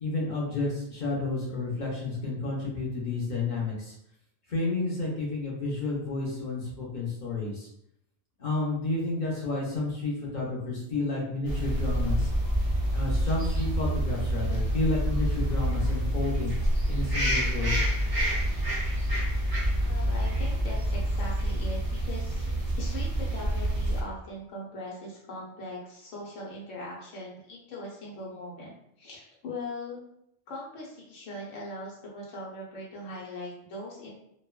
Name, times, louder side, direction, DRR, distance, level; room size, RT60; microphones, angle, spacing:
voice 1, 0.0-3.9 4.5-7.7 8.4-12.3 12.9-16.5 16.9-17.8, left 3 dB, 50° left, -3 dB, 0.6 m, -31 dB
sound 1, 11.4-24.0, right 1 dB, 35° right, 0.4 m, -27 dB
voice 2, 19.9-30.0 30.5-34.1, left 1 dB, 85° left, -4 dB, 1.1 m, -40 dB
2.9 x 2.1 x 2.3 m, 0.76 s
omnidirectional pair, 1.3 m